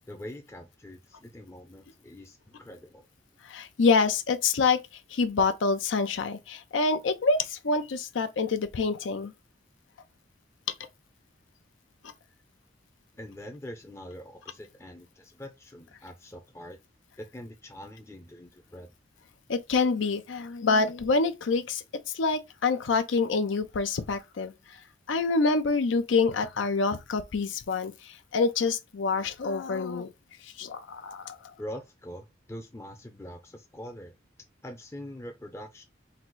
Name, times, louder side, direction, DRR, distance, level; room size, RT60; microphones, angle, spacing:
voice 1, 0.1-3.1 13.2-16.8 17.2-18.9 31.6-34.1 34.6-35.8, equal, 15° left, 0.4 m, -43 dB
voice 2, 3.4-9.3 12.0-12.1 19.5-24.8 25.1-30.1 30.4-31.4, left 4 dB, 85° left, 0.5 m, -27 dB
3.9 x 2.0 x 4.4 m
head